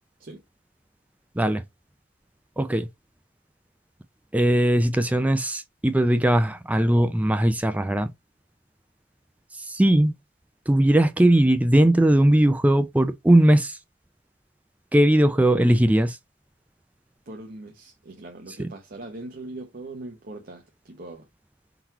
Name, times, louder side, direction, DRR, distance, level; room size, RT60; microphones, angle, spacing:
voice 1, 2.6-2.9 4.3-8.1 9.5-10.1 10.7-13.8 14.9-16.2 18.6-18.7, right 1 dB, 5° right, 0.3 m, -19 dB
voice 2, 17.3-21.3, right 2 dB, 45° right, 0.8 m, -40 dB
3.9 x 2.9 x 4.5 m
head